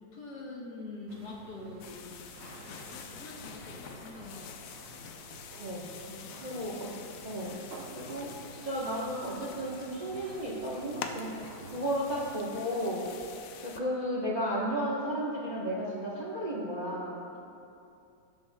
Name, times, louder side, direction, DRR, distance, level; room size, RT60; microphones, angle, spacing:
voice 1, 0.0-2.2 2.6-4.5 6.0-6.6, left 2 dB, 65° left, -2 dB, 1.7 m, -45 dB
sound 1, 1.1-12.3, right 4 dB, 75° right, 0.6 m, -51 dB
sound 2, 1.8-13.8, left 7 dB, 85° left, 1.4 m, -46 dB
voice 2, 6.4-6.9 7.2-7.6 7.9-11.3 11.7-13.1 13.6-17.2, equal, 30° right, -4 dB, 0.8 m, -33 dB
18.0 x 7.2 x 2.2 m, 2.6 s
omnidirectional pair, 2.1 m